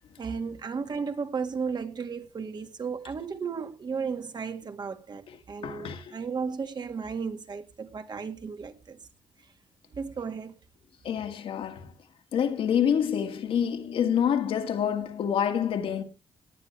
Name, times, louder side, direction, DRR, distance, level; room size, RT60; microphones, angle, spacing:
voice 1, 0.2-9.0 9.9-10.6, right 5 dB, 50° right, 1.9 m, -34 dB
voice 2, 5.6-6.1 11.0-11.9 12.3-16.0, left 8 dB, 75° left, 2.1 m, -27 dB
17.5 x 9.9 x 3.4 m
cardioid pair, 75°, 10 cm